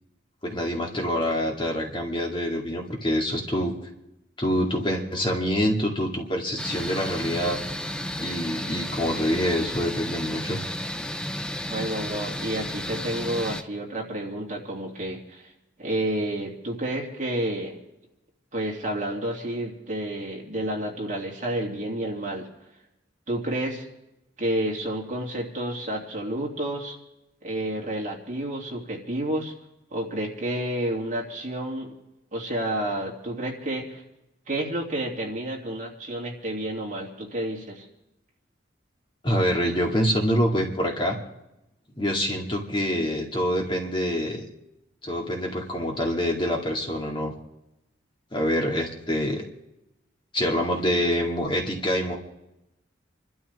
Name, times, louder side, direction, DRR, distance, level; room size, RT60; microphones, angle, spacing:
voice 1, 0.4-3.8 4.4-7.6 8.2-10.6 39.2-41.2 42.0-44.5 45.0-47.3 48.3-49.4 50.3-52.2, equal, 25° left, 0 dB, 2.1 m, -26 dB
sound 1, 6.6-13.6, left 1 dB, 5° left, 0.5 m, -32 dB
voice 2, 11.7-15.5 15.8-17.8 18.5-22.5 23.3-23.9 24.4-27.0 27.4-29.5 29.9-31.9 32.3-34.0 34.5-37.9, right 1 dB, 40° right, -1 dB, 2.8 m, -30 dB
28.0 x 12.5 x 3.6 m, 0.91 s
head